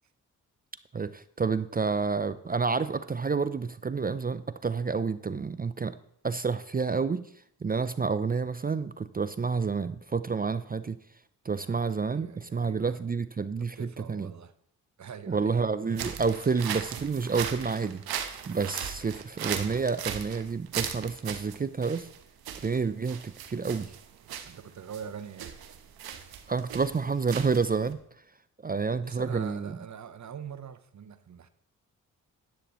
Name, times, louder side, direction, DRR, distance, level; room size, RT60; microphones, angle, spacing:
voice 1, 0.9-5.9 6.2-7.3 7.6-11.0 11.4-14.3 15.3-18.0 18.5-22.1 22.6-23.9 26.5-28.0 28.6-29.8, right 5 dB, 25° right, 14 dB, 0.5 m, -29 dB
voice 2, 11.5-13.0 13.6-14.5 15.0-15.6 16.4-16.5 24.5-25.5 29.0-31.5, right 7 dB, 50° right, 13 dB, 0.8 m, -43 dB
sound 1, 15.9-27.9, right 9 dB, 80° right, 1.0 m, -38 dB
11.5 x 10.5 x 3.0 m, 0.69 s
supercardioid pair, 50°, 37 cm